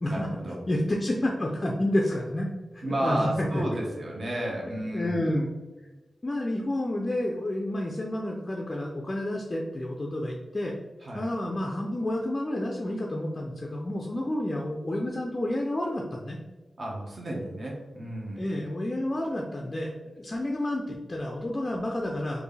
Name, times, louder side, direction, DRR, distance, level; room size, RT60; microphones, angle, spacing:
voice 1, 0.1-0.6 2.8-5.3 11.0-11.3 16.8-18.4, right 1 dB, 50° right, -3 dB, 1.1 m, -32 dB
voice 2, 0.7-2.5 2.7-3.6 4.9-5.5 6.2-10.8 11.1-16.4 18.4-22.4, left 1 dB, 30° left, -1 dB, 0.4 m, -30 dB
4.4 x 2.6 x 3.2 m, 1.2 s
wide cardioid pair, 130°, 0 cm